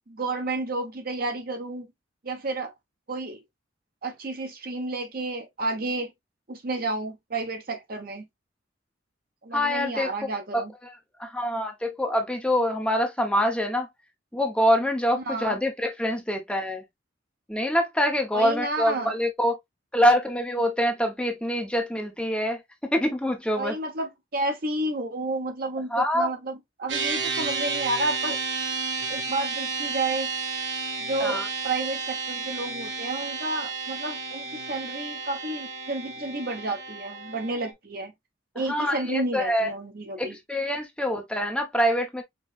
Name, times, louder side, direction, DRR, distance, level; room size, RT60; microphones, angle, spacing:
voice 1, 0.1-1.9 2.2-2.7 3.1-3.4 4.0-6.1 6.5-8.3 9.4-10.7 15.2-15.6 18.3-19.1 23.6-28.4 29.1-30.3 31.0-38.1 38.5-40.4, right 2 dB, 50° right, 0.9 m, -31 dB
voice 2, 9.5-10.6 11.2-13.9 14.3-16.8 17.5-19.6 19.9-23.8 25.9-26.3 31.2-31.5 38.7-39.7 40.2-42.2, equal, 5° left, 0.7 m, -25 dB
sound 1, 26.9-37.7, right 4 dB, 75° right, 1.1 m, -32 dB
5.3 x 3.0 x 2.4 m
head